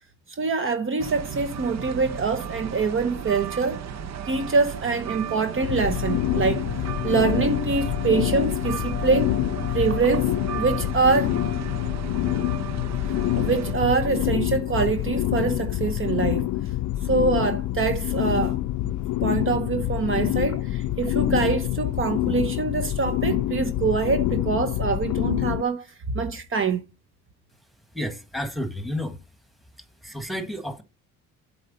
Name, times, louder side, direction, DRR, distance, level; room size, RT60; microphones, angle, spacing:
voice 1, 0.4-3.8 4.3-6.7 7.0-9.3 9.7-11.4 13.4-16.5 17.1-18.6 19.2-25.9 26.1-26.8, right 4 dB, 45° right, 1.0 m, -24 dB
sound 1, 1.0-13.7, right 8 dB, 65° right, 0.8 m, -35 dB
sound 2, 5.6-25.6, left 15 dB, 75° left, 0.5 m, -26 dB
voice 2, 27.9-29.2 30.0-30.8, left 1 dB, ahead, 1.6 m, -31 dB
8.0 x 4.5 x 5.4 m
cardioid pair, 90°, 30 cm